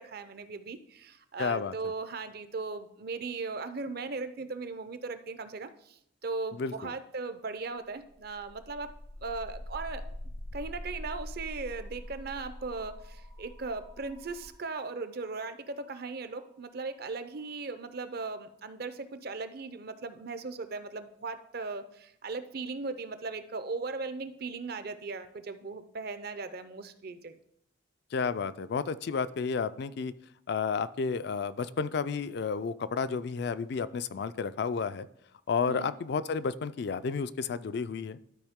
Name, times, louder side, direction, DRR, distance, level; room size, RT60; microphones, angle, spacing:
voice 1, 0.0-8.9 9.2-10.0 10.5-27.4 35.7-35.9, right 3 dB, 50° right, 11 dB, 0.6 m, -38 dB
voice 2, 1.4-1.7 6.6-6.9 28.1-30.1 30.5-35.1 35.5-38.2, left 5 dB, 55° left, 14 dB, 0.3 m, -31 dB
sound 1, 7.9-17.9, left 1 dB, 70° right, 1.8 m, -45 dB
12.0 x 4.8 x 3.6 m, 0.73 s
head